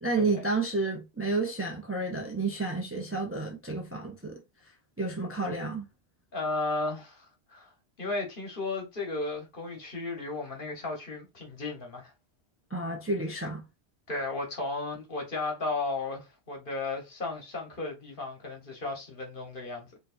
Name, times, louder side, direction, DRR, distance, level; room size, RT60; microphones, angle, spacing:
voice 1, 0.0-4.4 5.0-5.9 12.7-13.6, right 3 dB, 15° right, 0.6 m, -30 dB
voice 2, 6.3-7.7 8.0-12.1 14.1-20.0, left 3 dB, 50° left, 1.5 m, -34 dB
4.7 x 3.1 x 2.6 m
omnidirectional pair, 1.1 m